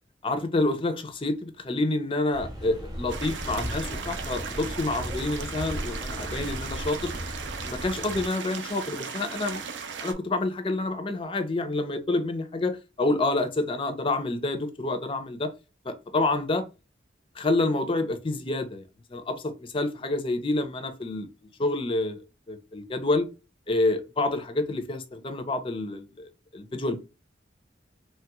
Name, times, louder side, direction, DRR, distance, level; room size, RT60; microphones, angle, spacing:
voice 1, 0.2-7.1 7.6-9.6 10.0-15.5 15.8-16.6 17.4-18.8 19.1-21.3 21.6-22.2 22.5-23.3 23.7-27.0, left 2 dB, 30° left, 0.5 m, -28 dB
sound 1, 2.3-8.3, equal, 20° right, 0.8 m, -36 dB
sound 2, 3.1-10.1, right 5 dB, 90° right, 0.5 m, -37 dB
3.0 x 2.3 x 2.9 m
head